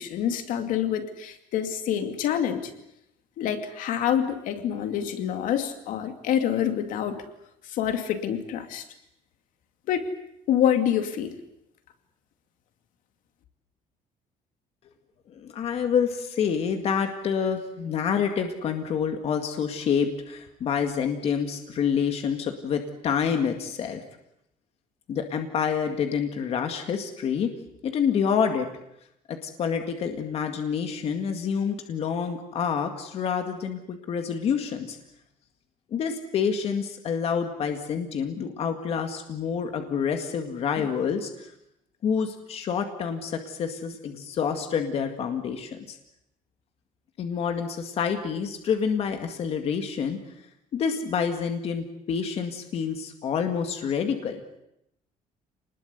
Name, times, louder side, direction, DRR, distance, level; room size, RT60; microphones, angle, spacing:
voice 1, 0.0-2.7 3.4-7.2 7.6-8.8 9.9-10.1 10.5-11.4, left 9 dB, 70° left, 7 dB, 2.5 m, -26 dB
voice 2, 15.3-24.0 25.1-27.5 27.8-28.7 29.3-35.0 35.9-41.5 42.0-46.0 47.2-50.2 50.7-54.4, left 7 dB, 45° left, 5 dB, 2.1 m, -27 dB
27.5 x 20.5 x 8.3 m, 0.79 s
cardioid pair, 170°, 14 cm